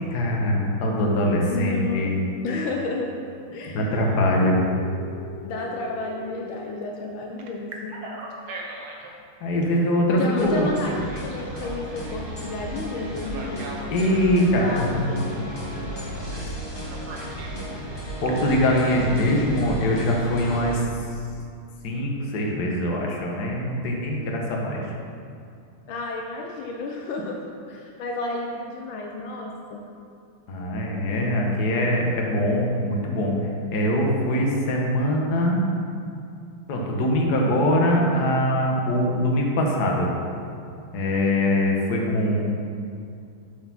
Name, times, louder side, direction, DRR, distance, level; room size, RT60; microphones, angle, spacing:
voice 1, 0.1-2.2 3.7-4.6 9.4-10.7 13.9-15.0 18.2-20.8 21.8-24.8 30.5-33.3 33.7-35.6 36.7-40.1 40.9-42.4, left 1 dB, 55° left, -1 dB, 1.5 m, -22 dB
voice 2, 1.4-2.1 2.4-3.2 3.5-4.1 5.4-7.9 10.1-13.7 14.6-15.3 25.9-27.4 27.7-29.8, left 3 dB, 75° left, 0 dB, 1.4 m, -31 dB
Telephone, 4.6-6.8 7.4-9.1 10.1-12.4 13.2-14.5 16.3-16.5 16.8-17.6 18.1-18.6, equal, 60° right, 1.2 m, -40 dB
sound 1, 10.4-20.8, equal, 20° left, 0.7 m, -34 dB
7.3 x 4.8 x 5.8 m, 2.4 s
omnidirectional pair, 2.3 m